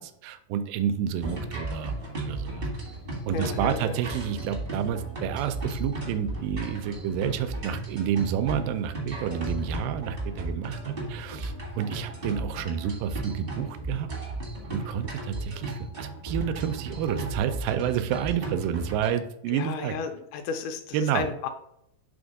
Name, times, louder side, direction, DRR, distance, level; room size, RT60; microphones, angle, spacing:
voice 1, 0.0-1.9 2.2-2.6 3.3-14.1 14.7-20.0 20.9-21.3, right 9 dB, 90° right, 10 dB, 2.2 m, -29 dB
sound 1, 1.2-19.1, right 2 dB, 40° right, 0.7 m, -35 dB
voice 2, 3.3-4.0 19.5-21.5, left 6 dB, 80° left, 7 dB, 2.0 m, -33 dB
5.3 x 3.6 x 5.1 m, 0.75 s
omnidirectional pair, 3.8 m